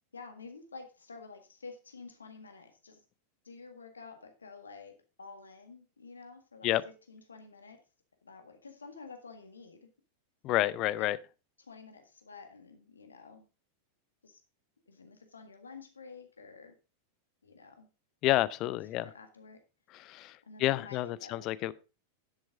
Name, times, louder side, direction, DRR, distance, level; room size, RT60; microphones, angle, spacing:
voice 1, 0.1-3.0 3.4-4.9 5.2-7.8 8.2-9.9 11.0-11.1 11.6-13.5 14.2-14.4 14.9-16.7 17.4-17.9 18.9-19.6 20.4-21.4, left 4 dB, 75° left, 1.8 m, -50 dB
voice 2, 10.4-11.2 18.2-19.0 20.1-20.3 20.6-21.7, left 15 dB, 40° left, 0.5 m, -29 dB
10.5 x 7.9 x 3.8 m
figure-of-eight pair, 90°, 0 cm